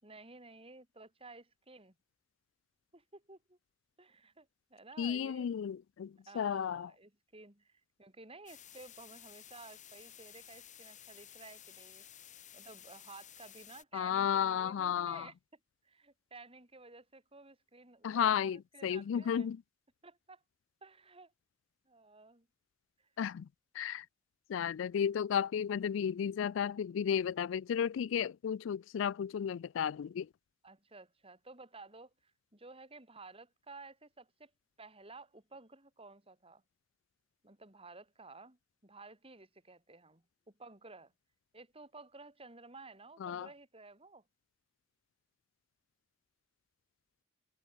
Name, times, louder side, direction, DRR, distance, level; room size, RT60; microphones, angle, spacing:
voice 1, 0.0-2.0 2.9-3.6 4.0-5.5 6.3-12.0 12.5-15.6 15.8-19.5 20.0-20.4 20.8-21.3 21.9-22.5 23.0-23.1 30.6-34.5 34.8-36.6 37.4-41.1 41.5-44.2, right 3 dB, 30° right, 5.2 m, -54 dB
voice 2, 5.0-6.9 13.9-15.3 18.0-19.6 23.2-23.5 23.7-24.1 24.5-30.3 43.2-43.5, left 8 dB, 70° left, 0.3 m, -33 dB
sound 1, 8.5-13.8, left 10 dB, 40° left, 7.7 m, -54 dB
head